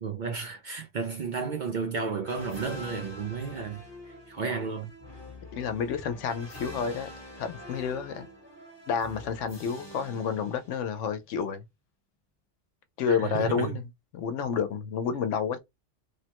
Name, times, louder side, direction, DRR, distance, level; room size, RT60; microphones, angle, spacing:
voice 1, 0.0-4.9 13.1-13.7, right 5 dB, 60° right, 0.5 m, -33 dB
sound 1, 2.2-11.1, left 1 dB, 20° left, 1.0 m, -45 dB
voice 2, 5.5-7.1 7.4-8.3 8.9-11.6 13.0-13.8 14.1-15.6, left 6 dB, 85° left, 1.0 m, -30 dB
3.1 x 2.1 x 2.9 m
omnidirectional pair, 1.2 m